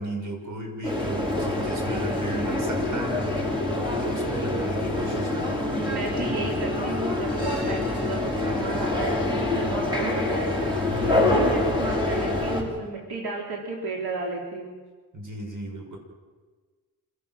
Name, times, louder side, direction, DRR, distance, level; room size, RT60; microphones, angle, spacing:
voice 1, 0.0-3.2 4.0-6.0 10.9-11.8 15.1-16.0, right 1 dB, 55° right, 2 dB, 6.1 m, -35 dB
sound 1, 0.8-12.6, left 2 dB, 15° right, 6.1 m, -26 dB
voice 2, 1.7-2.5 4.4-4.7 5.7-14.8, right 3 dB, 90° right, -1 dB, 3.7 m, -33 dB
26.5 x 17.0 x 7.6 m, 1.4 s
wide cardioid pair, 105°, 36 cm